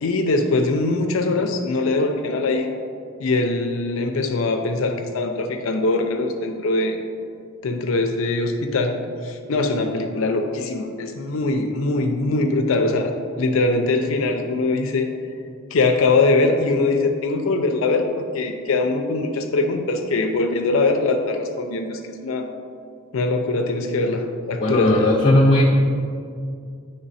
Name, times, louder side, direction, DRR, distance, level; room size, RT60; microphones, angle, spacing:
voice 1, 0.0-2.7 3.2-7.0 7.6-15.1 15.7-22.5 23.1-25.1, left 3 dB, 70° left, 4 dB, 0.4 m, -22 dB
voice 2, 24.6-25.7, left 1 dB, 25° left, -6 dB, 0.7 m, -16 dB
9.0 x 3.3 x 4.1 m, 2.3 s
head